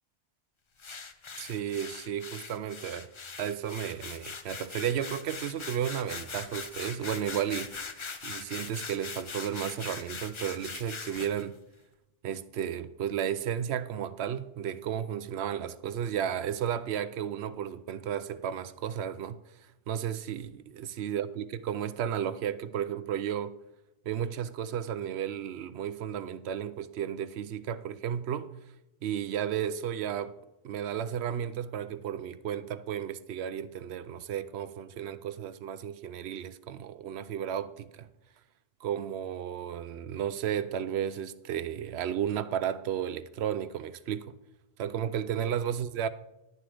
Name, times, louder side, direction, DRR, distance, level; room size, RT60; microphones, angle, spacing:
sound 1, 0.8-11.4, left 4 dB, 35° left, 0.6 m, -41 dB
voice 1, 1.4-3.1 3.4-7.8 8.2-11.6 12.2-23.6 24.1-28.5 29.0-30.4 30.6-38.1 38.8-44.4 44.8-46.1, right 9 dB, 90° right, 0.9 m, -33 dB
11.0 x 10.5 x 3.4 m
omnidirectional pair, 1.1 m